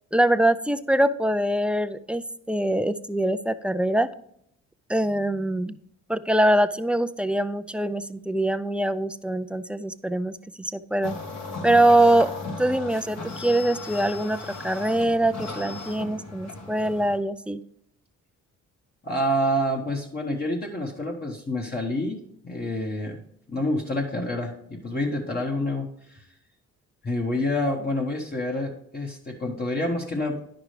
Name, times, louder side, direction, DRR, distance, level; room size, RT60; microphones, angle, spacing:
voice 1, 0.1-4.1 4.9-5.8 6.1-11.2 11.6-12.3 12.6-17.6, right 1 dB, 5° right, 10 dB, 0.3 m, -23 dB
sound 1, 11.0-17.2, left 3 dB, 60° left, 1.8 m, -36 dB
voice 2, 19.0-23.2 23.5-26.2 27.0-30.4, left 1 dB, 30° left, 0 dB, 1.2 m, -28 dB
10.0 x 6.0 x 3.3 m, 0.71 s
cardioid pair, 90°, 30 cm